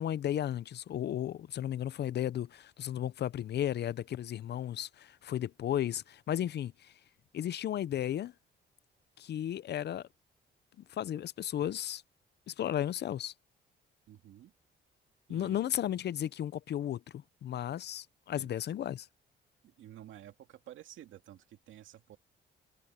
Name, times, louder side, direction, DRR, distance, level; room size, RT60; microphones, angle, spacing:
voice 1, 0.0-6.9 7.3-8.3 9.2-10.1 10.9-12.0 12.5-13.3 15.3-19.1, left 11 dB, 55° left, 0.6 m, -34 dB
voice 2, 14.1-14.5 15.3-15.8 18.3-18.5 19.6-22.2, right 12 dB, 80° right, 2.2 m, -52 dB
cardioid pair, 90°, 20 cm